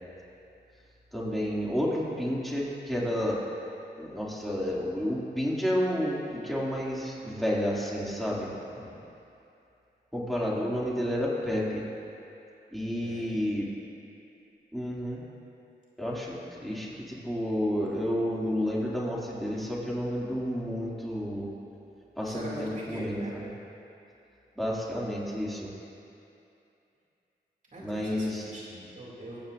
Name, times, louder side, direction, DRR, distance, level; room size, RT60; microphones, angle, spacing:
voice 1, 1.1-3.4 4.0-8.5 10.1-11.8 12.7-13.7 14.7-15.2 16.0-21.5 22.2-23.5 24.6-25.7 27.8-28.4, equal, ahead, -5 dB, 2.5 m, -30 dB
voice 2, 13.0-13.4 22.3-23.3 27.7-29.4, right 1 dB, 45° right, -5 dB, 2.7 m, -41 dB
22.5 x 8.6 x 2.6 m, 2.7 s
cardioid pair, 50°, 18 cm